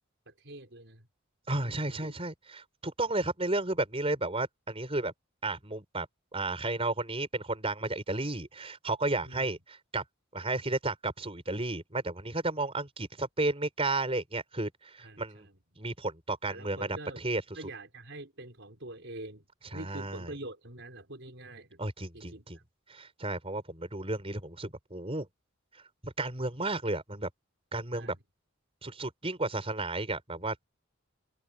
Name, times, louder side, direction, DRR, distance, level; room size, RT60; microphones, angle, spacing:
voice 1, 0.3-1.1 1.6-2.2 9.2-9.6 15.0-15.6 16.5-17.2 17.5-21.8 22.1-22.6 27.9-28.2, right 1 dB, 60° right, 5.1 m, -45 dB
voice 2, 1.5-5.1 5.4-6.1 6.3-10.0 10.3-15.5 15.8-17.4 19.7-20.3 21.8-22.6 22.9-25.3 26.0-27.3 27.7-28.1 28.8-30.5, right 2 dB, 30° right, 5.0 m, -33 dB
head